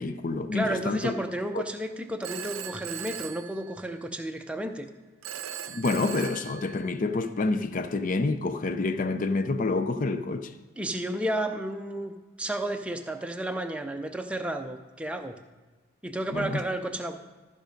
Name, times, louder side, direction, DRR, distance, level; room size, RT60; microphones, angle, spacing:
voice 1, 0.0-1.1 1.5-1.6 5.7-10.5 16.3-16.6, left 3 dB, 40° left, 0.5 m, -28 dB
voice 2, 0.5-4.9 10.8-12.1 12.4-15.4 16.0-17.2, right 1 dB, 5° right, 0.5 m, -32 dB
Telephone, 2.2-4.2 5.2-7.2, right 9 dB, 80° right, 0.6 m, -39 dB
14.0 x 5.2 x 5.2 m
head